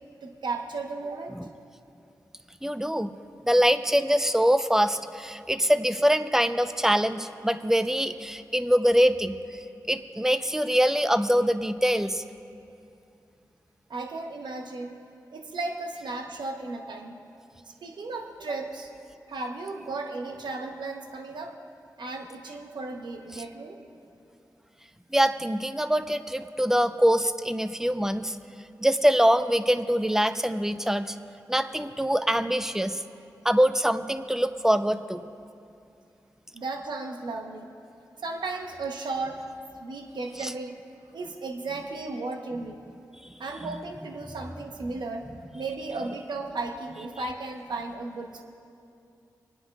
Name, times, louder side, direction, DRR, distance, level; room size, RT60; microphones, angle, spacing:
voice 1, 0.2-1.3 13.9-15.0 15.3-17.2 17.7-18.9 19.3-21.5 22.0-23.8 36.5-37.7 38.2-39.4 39.8-40.8 41.1-42.8 43.4-45.3 45.5-48.4, right 3 dB, 80° right, 3 dB, 0.9 m, -35 dB
voice 2, 2.6-3.1 3.4-9.4 9.9-12.2 23.3-23.4 25.1-28.4 28.8-31.2 31.5-33.0 33.4-35.2 40.4-40.5, equal, 5° right, 10 dB, 0.6 m, -24 dB
28.0 x 9.7 x 2.3 m, 2.6 s
cardioid pair, 40°, 7 cm